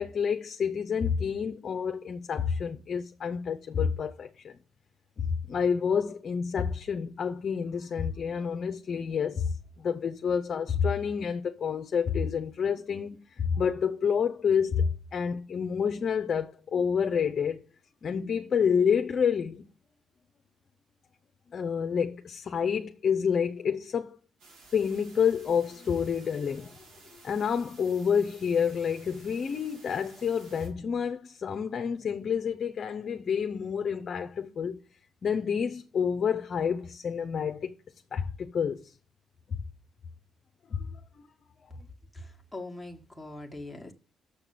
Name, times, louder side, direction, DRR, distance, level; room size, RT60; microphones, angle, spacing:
voice 1, 0.0-4.6 5.2-17.6 18.0-19.7 21.5-24.2 24.7-26.8 27.2-34.8 35.2-37.7 38.1-38.9 40.7-41.0, left 7 dB, 50° left, 0.6 m, -29 dB
sound 1, 24.4-30.7, right 3 dB, 90° right, 2.7 m, -54 dB
voice 2, 42.1-43.9, left 2 dB, ahead, 1.5 m, -42 dB
6.7 x 5.8 x 6.8 m
cardioid pair, 90°, 0 cm